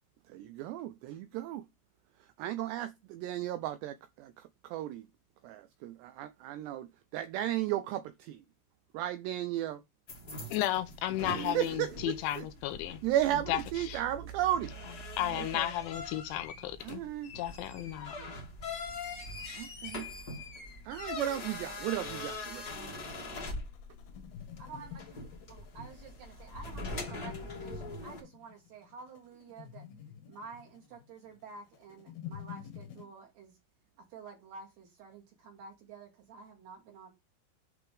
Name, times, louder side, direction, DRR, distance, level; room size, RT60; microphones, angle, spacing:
voice 1, 0.3-1.6 2.2-5.1 5.4-8.4 8.9-9.8 11.2-12.5 13.0-14.7 15.3-15.7 16.8-17.3 17.8-18.4 19.5-20.1 20.9-23.1, right 13 dB, 85° right, 2.4 m, -35 dB
sound 1, 10.1-28.2, left 2 dB, 40° left, 1.3 m, -43 dB
voice 2, 10.5-13.0 13.5-13.6 13.9-14.0 15.2-17.0 17.4-18.1, left 13 dB, 80° left, 3.0 m, -33 dB
sound 2, 22.4-33.1, left 10 dB, 65° left, 2.8 m, -49 dB
voice 3, 24.6-25.2 25.5-29.9 30.3-33.6 34.0-37.1, right 4 dB, 60° right, 4.3 m, -50 dB
10.5 x 5.9 x 3.5 m
omnidirectional pair, 5.7 m